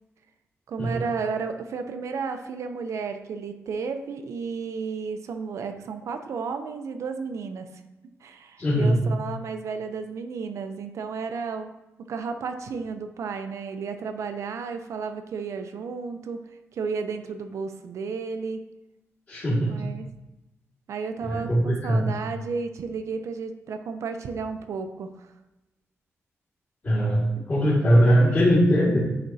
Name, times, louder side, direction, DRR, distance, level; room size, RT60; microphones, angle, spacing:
voice 1, 0.7-7.8 8.2-11.7 12.0-16.4 16.7-18.6 19.7-20.1 20.9-25.3 27.4-27.5 27.9-28.4, right 5 dB, 80° right, 7 dB, 0.6 m, -33 dB
voice 2, 8.6-9.0 19.3-19.7 21.2-22.1 26.8-29.0, equal, 35° left, -11 dB, 2.0 m, -21 dB
9.7 x 4.3 x 2.8 m, 1.0 s
wide cardioid pair, 175°, 5 cm